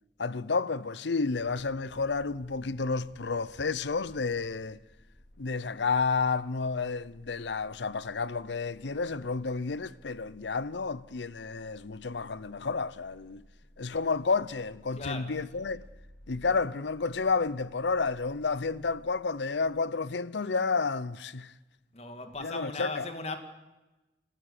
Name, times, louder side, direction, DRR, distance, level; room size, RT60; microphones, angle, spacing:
voice 1, 0.2-4.8 5.4-13.4 13.8-15.8 16.3-21.5 22.4-23.0, left 4 dB, 90° left, 0.7 m, -31 dB
sound 1, 1.3-19.8, left 1 dB, 65° left, 4.1 m, -57 dB
voice 2, 14.9-15.4 21.9-23.4, left 3 dB, 35° left, 2.2 m, -37 dB
29.5 x 14.0 x 8.4 m
head